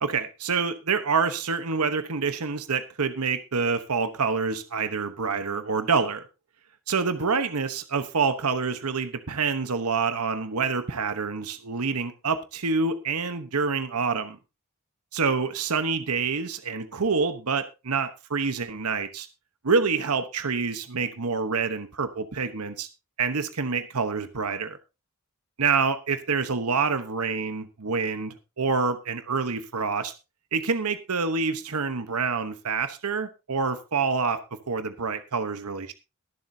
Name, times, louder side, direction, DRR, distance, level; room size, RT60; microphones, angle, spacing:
voice 1, 0.0-6.2 6.9-14.4 15.1-19.3 19.6-22.9 23.2-24.8 25.6-30.1 30.5-34.4 34.7-35.9, right 5 dB, 85° right, 1.1 m, -27 dB
22.0 x 7.6 x 2.8 m
head